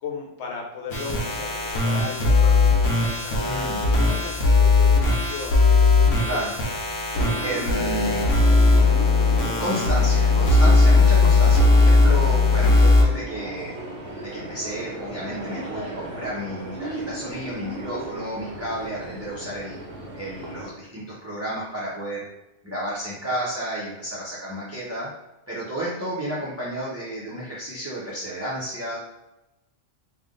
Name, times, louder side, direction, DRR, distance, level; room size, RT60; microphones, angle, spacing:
voice 1, 0.0-6.4, left 4 dB, 65° left, 0 dB, 1.0 m, -36 dB
sound 1, 0.9-13.0, left 3 dB, 90° left, 1.2 m, -18 dB
voice 2, 3.4-3.8 6.2-6.5 7.4-8.2 9.6-13.7 14.2-19.8 20.1-22.2 22.6-25.1 25.5-29.0, right 1 dB, 15° right, -9 dB, 0.9 m, -31 dB
sound 2, 7.1-20.7, right 1 dB, 55° right, 1.0 m, -36 dB
3.5 x 2.5 x 3.7 m, 0.94 s
omnidirectional pair, 1.3 m